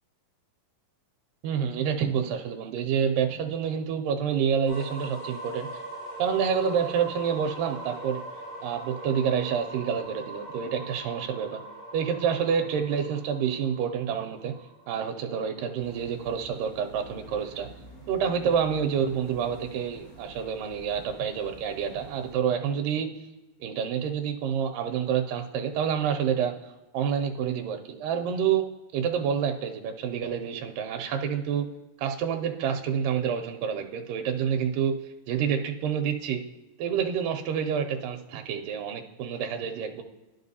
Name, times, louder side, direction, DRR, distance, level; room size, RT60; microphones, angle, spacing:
voice 1, 1.4-5.7 6.2-8.2 8.6-11.6 11.9-14.5 14.9-17.7 18.1-23.1 23.6-28.7 28.9-31.7 32.0-35.0 35.3-36.4 36.8-40.0, right 7 dB, 80° right, 3 dB, 2.1 m, -28 dB
sound 1, 4.6-16.4, right 1 dB, 35° left, 3.1 m, -42 dB
sound 2, 15.8-22.4, right 1 dB, 55° left, 1.0 m, -49 dB
11.5 x 5.2 x 2.7 m, 1.1 s
omnidirectional pair, 4.0 m